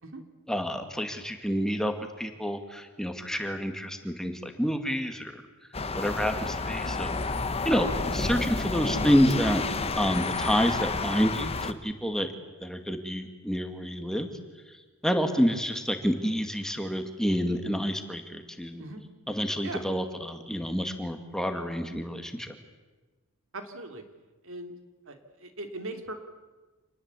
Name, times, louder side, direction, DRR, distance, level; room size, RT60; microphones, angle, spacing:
voice 1, 0.5-1.9 2.2-5.3 5.9-7.1 7.6-9.6 9.9-12.3 12.6-14.3 15.0-18.8 19.3-22.5, equal, ahead, 6 dB, 2.1 m, -28 dB
sound 1, 5.7-11.7, left 3 dB, 25° left, 1.1 m, -30 dB
voice 2, 23.5-24.0 24.4-24.7 25.1-26.1, right 2 dB, 60° right, 6 dB, 3.0 m, -39 dB
27.0 x 19.5 x 8.4 m, 1.3 s
head